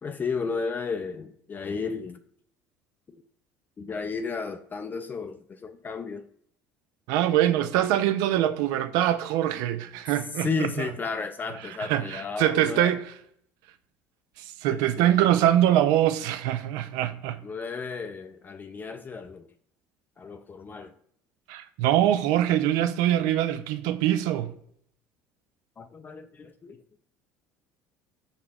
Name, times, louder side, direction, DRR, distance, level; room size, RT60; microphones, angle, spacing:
voice 1, 0.0-2.2 3.8-6.3 10.4-13.0 14.7-15.2 17.4-19.5 20.2-20.9 25.8-26.8, left 5 dB, 30° left, 0.3 m, -33 dB
voice 2, 7.1-10.9 11.6-13.0 14.4-17.4 21.5-24.5, right 12 dB, 75° right, 0.4 m, -24 dB
5.5 x 3.7 x 2.3 m
supercardioid pair, 85°, 7 cm